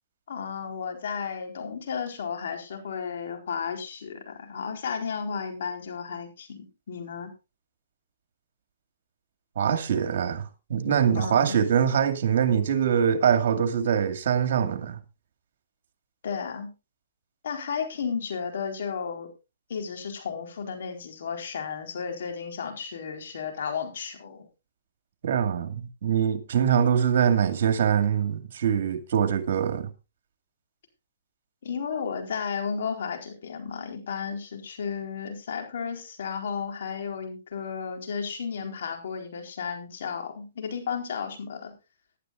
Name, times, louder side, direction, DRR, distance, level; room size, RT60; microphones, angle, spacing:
voice 1, 0.3-7.3 11.1-11.6 16.2-16.7 17.4-19.3 19.7-24.5 31.6-41.7, left 6 dB, 70° left, 4.2 m, -33 dB
voice 2, 9.6-15.0 25.2-29.9, right 8 dB, 60° right, 2.2 m, -23 dB
19.5 x 11.0 x 2.5 m
hypercardioid pair, 140°, 0 cm